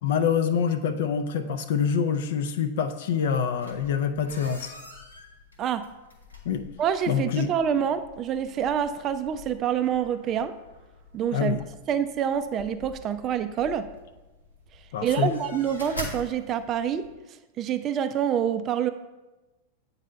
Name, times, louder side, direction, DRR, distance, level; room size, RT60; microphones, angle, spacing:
voice 1, 0.0-4.7 6.5-6.6 7.1-7.5 11.3-11.6 14.9-15.3, left 7 dB, 55° left, 8 dB, 0.5 m, -26 dB
sound 1, 3.5-17.1, left 1 dB, 80° left, 1.4 m, -45 dB
voice 2, 6.8-10.5 11.1-11.6 11.9-13.9 15.0-17.1 17.6-18.9, right 8 dB, 30° right, 10 dB, 0.4 m, -26 dB
8.4 x 4.0 x 5.4 m, 1.1 s
figure-of-eight pair, 90°, 0 cm